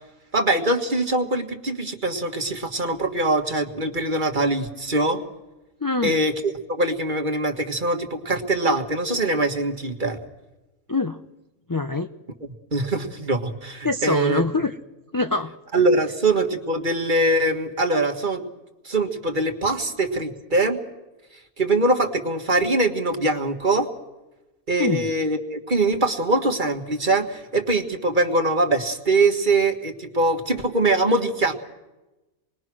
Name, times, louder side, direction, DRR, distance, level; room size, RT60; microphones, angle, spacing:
voice 1, 0.3-5.2 6.0-10.2 12.4-14.4 15.7-18.4 18.8-20.8 21.6-23.9 24.7-31.5, right 2 dB, 35° right, 4 dB, 1.9 m, -23 dB
voice 2, 5.8-6.2 10.9-11.2 11.7-12.1 13.8-14.7 15.1-15.5 24.8-25.1, left 3 dB, 25° left, 5 dB, 0.5 m, -24 dB
27.5 x 21.0 x 6.2 m, 1.0 s
omnidirectional pair, 1.5 m